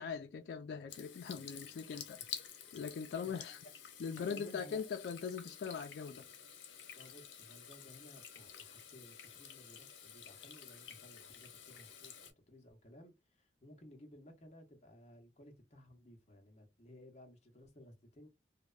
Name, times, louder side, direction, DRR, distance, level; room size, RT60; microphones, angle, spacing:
voice 1, 0.0-2.2 2.7-3.6 4.0-6.3, left 6 dB, 65° left, 0.3 m, -41 dB
Water tap faucet / Sink (filling or washing), 0.9-12.3, left 8 dB, 90° left, 0.7 m, -51 dB
voice 2, 3.2-3.6 4.1-4.8 6.9-18.3, equal, 35° left, 0.7 m, -57 dB
2.8 x 2.1 x 2.3 m
head